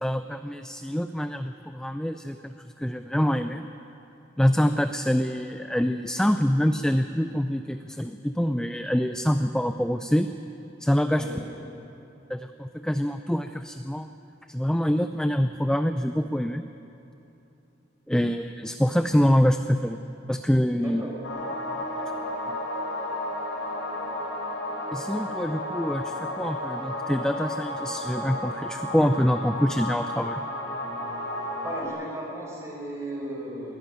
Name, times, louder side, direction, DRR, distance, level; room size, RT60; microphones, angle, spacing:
voice 1, 0.0-3.7 4.4-10.3 10.8-11.2 12.3-14.1 14.5-16.6 18.1-20.0 20.3-21.0 22.5-22.6 24.9-30.4, equal, 5° left, 8 dB, 0.4 m, -25 dB
voice 2, 11.1-11.7 20.8-21.1 31.6-33.7, right 1 dB, 15° right, -3 dB, 5.4 m, -36 dB
sound 1, 21.2-31.9, left 1 dB, 85° left, 5.1 m, -32 dB
22.5 x 13.0 x 9.2 m, 2.9 s
head